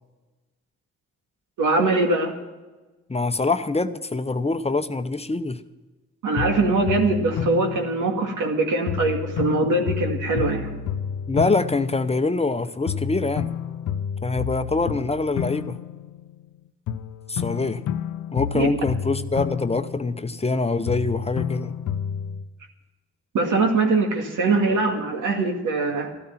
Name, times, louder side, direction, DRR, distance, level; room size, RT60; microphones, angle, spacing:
voice 1, 1.6-2.4 6.2-10.7 18.5-18.7 23.3-26.1, right 3 dB, 85° right, 2 dB, 2.2 m, -22 dB
voice 2, 3.1-5.6 11.3-13.5 14.2-15.8 17.3-17.8 18.3-21.7, left 3 dB, 20° left, 10 dB, 0.8 m, -24 dB
sound 1, 6.4-8.5 8.9-12.6 12.9-16.5 16.9-20.6 20.9-22.5, left 8 dB, 80° left, 0.7 m, -30 dB
13.0 x 13.0 x 5.8 m, 1.2 s
cardioid pair, 65°, 30 cm